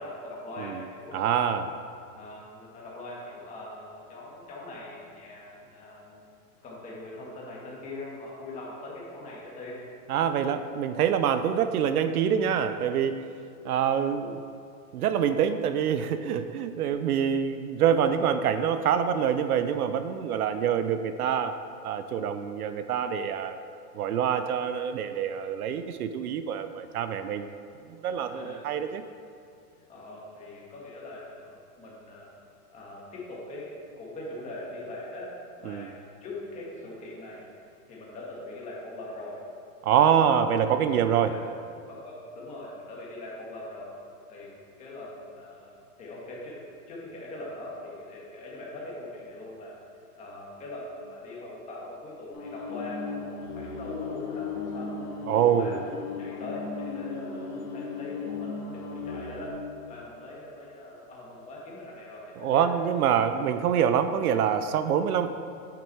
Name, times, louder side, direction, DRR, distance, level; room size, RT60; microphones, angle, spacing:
voice 1, 0.0-1.3 2.1-6.2 6.6-9.8 28.2-28.6 29.7-32.3 32.7-37.4 37.9-39.4 40.0-40.2 41.1-41.4 41.9-43.9 44.3-44.5 44.8-49.7 50.2-54.9 55.3-55.8 56.2-59.5 59.9-62.7, left 1 dB, 15° left, -4 dB, 1.4 m, -41 dB
voice 2, 1.1-1.7 10.1-13.2 13.6-14.4 14.9-21.5 21.8-23.6 23.9-27.5 27.9-29.0 35.7-35.9 39.8-41.3 55.3-55.7 62.4-65.3, right 8 dB, 70° right, 10 dB, 0.6 m, -25 dB
sound 1, 52.3-59.5, left 4 dB, 70° left, 1.7 m, -36 dB
9.0 x 5.9 x 4.6 m, 2.5 s
supercardioid pair, 160°, 46 cm